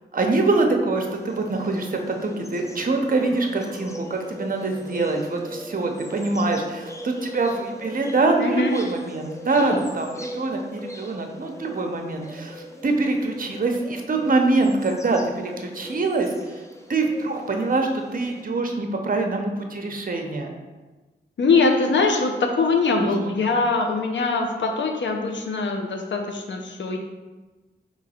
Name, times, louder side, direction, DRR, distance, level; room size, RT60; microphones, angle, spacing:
voice 1, 0.1-16.3 16.9-20.5 23.0-23.4, right 3 dB, 45° right, 3 dB, 0.7 m, -24 dB
sound 1, 1.0-18.4, left 1 dB, 15° left, 0.5 m, -40 dB
voice 2, 8.4-8.8 9.6-9.8 21.4-27.0, left 3 dB, 70° left, 3 dB, 0.7 m, -22 dB
3.8 x 3.0 x 4.3 m, 1.2 s
cardioid pair, 50°, 20 cm